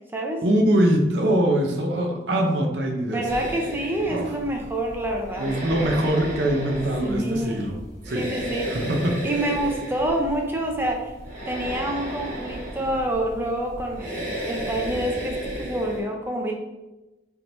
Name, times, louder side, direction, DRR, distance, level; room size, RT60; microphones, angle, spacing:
voice 1, 0.4-3.3 4.1-4.3 5.4-7.8 8.1-8.3 8.7-9.2, right 1 dB, 65° right, 3 dB, 0.6 m, -23 dB
voice 2, 3.0-5.5 7.0-7.7 8.2-8.7 9.2-11.1 11.5-16.5, right 1 dB, 10° right, 1 dB, 0.5 m, -27 dB
sound 1, 3.3-16.0, equal, 45° right, 1.2 m, -34 dB
4.3 x 3.6 x 2.6 m, 1.0 s
head